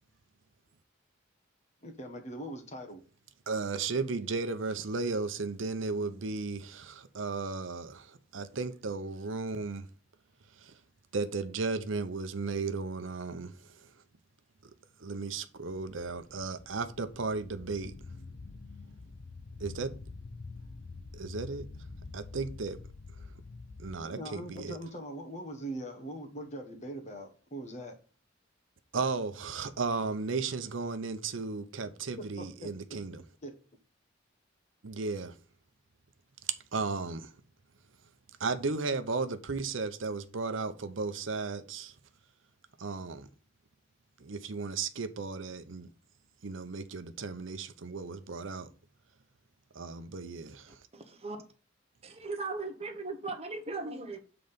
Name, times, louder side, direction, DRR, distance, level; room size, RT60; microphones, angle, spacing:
voice 1, 1.8-3.0 24.0-28.0 32.2-33.0 33.4-33.6, right 1 dB, 35° left, 1.4 m, -42 dB
voice 2, 3.5-9.9 10.6-10.8 11.1-13.9 15.0-17.9 19.6-19.9 21.1-21.7 22.1-22.8 23.8-24.8 28.9-33.2 34.8-35.4 36.7-37.3 38.4-41.9 42.8-43.3 44.2-45.9 46.4-48.7 49.7-50.8, right 4 dB, 70° right, 0.7 m, -35 dB
sound 1, 15.8-24.0, left 3 dB, 55° left, 0.6 m, -47 dB
voice 3, 50.9-51.4 52.0-54.2, right 3 dB, 30° right, 1.1 m, -38 dB
7.6 x 3.9 x 5.1 m
head